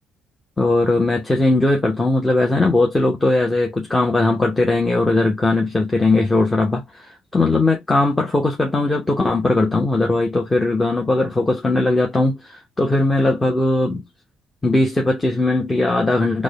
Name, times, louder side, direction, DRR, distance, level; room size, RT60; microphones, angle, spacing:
voice 1, 0.6-14.0 14.6-16.4, left 2 dB, 20° left, 0.8 m, -19 dB
3.5 x 2.1 x 3.3 m
supercardioid pair, 75°, 0 cm